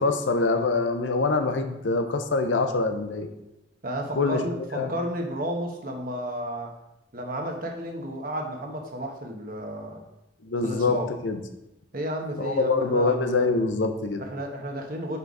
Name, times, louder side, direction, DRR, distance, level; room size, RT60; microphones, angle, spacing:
voice 1, 0.0-3.3 4.2-4.4 4.7-4.9 10.4-11.4 12.4-14.2, left 3 dB, 80° left, 7 dB, 0.6 m, -24 dB
voice 2, 3.8-6.7 7.1-10.0 10.6-11.1 11.9-13.2 14.2-15.2, right 1 dB, 50° right, 2 dB, 0.9 m, -32 dB
5.4 x 4.0 x 4.7 m, 0.92 s
head